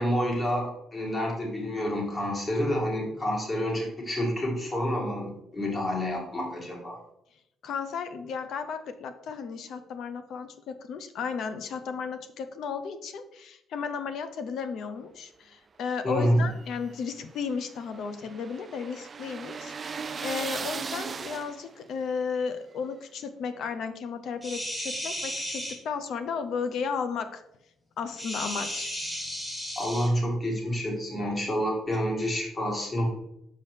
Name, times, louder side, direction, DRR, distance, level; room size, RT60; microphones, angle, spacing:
voice 1, 0.0-7.0 16.0-16.5 29.8-33.1, equal, 30° left, -1 dB, 2.2 m, -28 dB
voice 2, 7.6-27.4 28.0-28.9, left 6 dB, 70° left, 9 dB, 0.6 m, -34 dB
sound 1, 16.4-21.9, right 5 dB, 40° right, 0.3 m, -38 dB
sound 2, 24.4-25.8 28.2-30.1 31.9-32.0, equal, 10° left, 2.0 m, -34 dB
5.6 x 5.4 x 3.3 m, 0.81 s
supercardioid pair, 75°, 0 cm